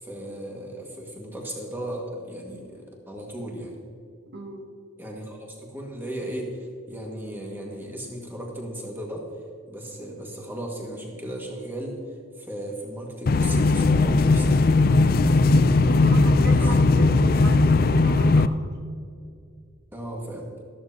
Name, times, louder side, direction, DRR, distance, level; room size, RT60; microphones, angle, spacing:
voice 1, 0.0-3.8 5.0-9.3 9.7-12.0 12.4-15.1 16.5-16.7 19.9-20.5, right 1 dB, 10° right, -1 dB, 2.0 m, -36 dB
voice 2, 4.3-4.6 15.9-18.7, right 1 dB, 55° right, 3 dB, 1.2 m, -36 dB
sound 1, 13.3-18.5, left 3 dB, 45° left, 0.4 m, -18 dB
14.0 x 13.0 x 2.9 m, 2.4 s
head